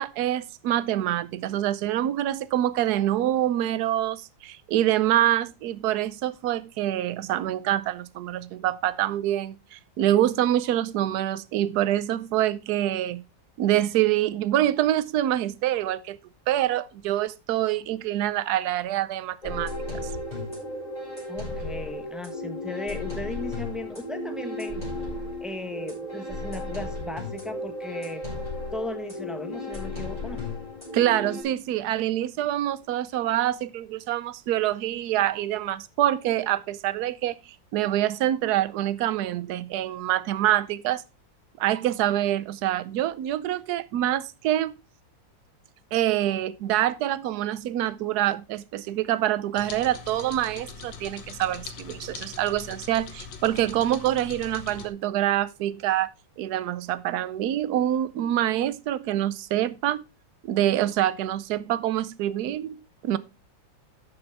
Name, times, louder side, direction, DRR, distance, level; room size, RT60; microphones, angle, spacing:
voice 1, 0.0-13.2 13.6-16.2 16.5-19.7 20.0-20.1 30.9-37.4 37.7-41.0 41.6-44.7 45.9-56.1 56.4-60.1 60.4-63.2, right 13 dB, 65° right, 1.1 m, -26 dB
sound 1, 19.4-31.4, left 2 dB, 20° left, 6.2 m, -34 dB
voice 2, 21.3-24.8 25.4-28.3 28.7-30.4, left 1 dB, ahead, 0.9 m, -36 dB
sound 2, 49.6-54.9, left 5 dB, 70° left, 2.0 m, -41 dB
12.5 x 7.0 x 3.4 m
omnidirectional pair, 2.1 m